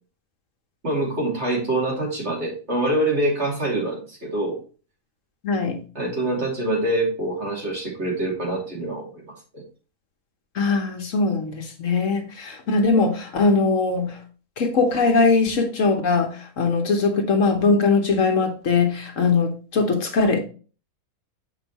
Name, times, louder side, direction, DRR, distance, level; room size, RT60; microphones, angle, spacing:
voice 1, 0.8-4.6 5.9-9.2 9.5-9.6, right 1 dB, 50° right, 3.0 m, -25 dB
voice 2, 5.4-5.8 10.5-14.2 14.6-20.4, left 4 dB, 60° left, 1.4 m, -21 dB
7.8 x 5.5 x 3.0 m
omnidirectional pair, 1.5 m